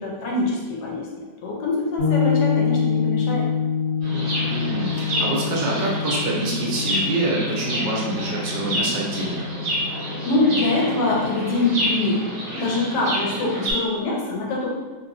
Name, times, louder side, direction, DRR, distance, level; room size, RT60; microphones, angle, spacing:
voice 1, 0.0-3.4 10.2-12.3 12.5-14.7, left 2 dB, 70° left, -3 dB, 1.2 m, -24 dB
sound 1, 2.0-11.7, left 6 dB, 35° left, 1.7 m, -26 dB
Chirp tweet, 4.0-13.7, equal, 65° right, 1.6 m, -29 dB
voice 2, 4.4-9.5, right 2 dB, 85° right, -3 dB, 1.5 m, -26 dB
3.4 x 2.8 x 2.6 m, 1.3 s
omnidirectional pair, 1.9 m